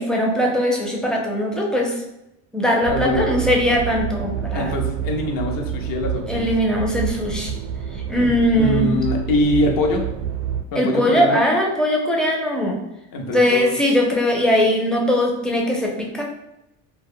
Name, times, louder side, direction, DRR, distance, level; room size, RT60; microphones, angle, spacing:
voice 1, 0.0-2.0 2.5-4.7 6.3-7.5 8.1-8.9 10.7-12.8 13.3-16.2, left 1 dB, ahead, -1 dB, 0.4 m, -20 dB
sound 1, 2.8-10.6, right 8 dB, 75° right, 0.5 m, -28 dB
voice 2, 2.9-3.3 4.5-6.5 8.2-8.3 8.5-10.1 10.7-11.4 13.1-13.7, left 1 dB, 50° left, 3 dB, 0.7 m, -23 dB
2.2 x 2.0 x 3.6 m, 0.87 s
supercardioid pair, 100°, 43 cm